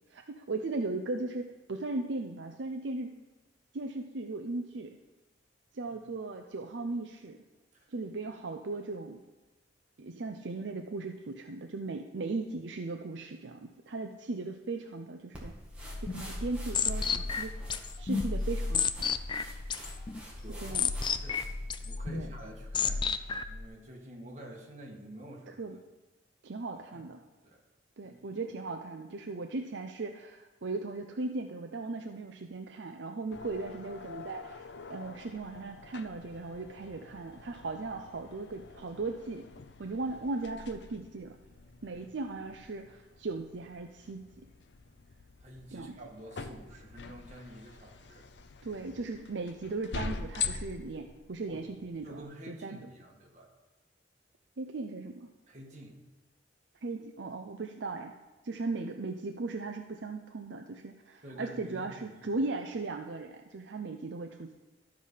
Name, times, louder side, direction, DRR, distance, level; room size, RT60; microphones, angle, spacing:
voice 1, 0.1-3.2 3.7-5.0 5.7-7.4 7.9-9.2 10.0-15.5 16.0-17.5 18.0-19.1 20.6-20.9 22.1-22.3 25.6-25.8 26.4-27.2 28.0-39.5 39.8-41.4 41.8-44.2 45.7-45.9 48.6-52.8 54.6-55.3 56.8-58.1 58.4-64.5, right 3 dB, 70° right, 4 dB, 0.6 m, -37 dB
sound 1, 15.3-21.8, equal, 5° right, 1.9 m, -47 dB
sound 2, 15.7-23.6, left 5 dB, 25° left, 0.3 m, -33 dB
voice 2, 20.4-21.5 21.8-25.6 26.7-27.1 27.4-27.6 28.0-28.4 45.4-48.2 51.5-51.6 52.0-53.5 55.5-56.0 61.2-62.3, right 1 dB, 40° right, -1 dB, 1.8 m, -49 dB
sound 3, 33.3-52.2, left 5 dB, 65° left, 0.6 m, -44 dB
13.0 x 5.0 x 5.6 m, 1.2 s
head